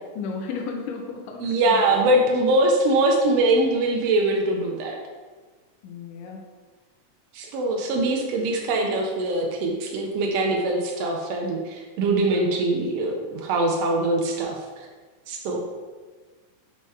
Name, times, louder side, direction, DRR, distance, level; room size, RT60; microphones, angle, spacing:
voice 1, 0.2-2.1 5.8-6.5, left 5 dB, 85° left, 1 dB, 2.2 m, -34 dB
voice 2, 1.4-5.0 7.3-14.9 15.3-15.6, right 2 dB, 90° right, 1 dB, 1.3 m, -23 dB
5.7 x 4.3 x 4.7 m, 1.4 s
omnidirectional pair, 3.7 m